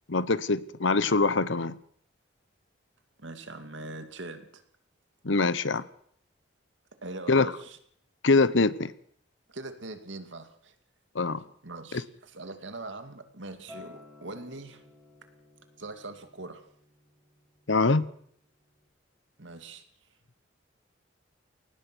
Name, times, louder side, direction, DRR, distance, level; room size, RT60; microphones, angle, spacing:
voice 1, 0.1-1.8 5.2-5.8 7.3-7.5 8.2-8.9 11.1-11.4 17.7-18.1, left 3 dB, 80° left, 1.0 m, -23 dB
voice 2, 3.2-4.6 7.0-7.8 9.5-10.7 11.6-14.8 15.8-16.6 19.4-19.8, right 2 dB, 80° right, 2.4 m, -42 dB
Acoustic guitar, 13.7-18.9, left 3 dB, 5° right, 5.7 m, -54 dB
22.0 x 19.0 x 6.2 m
head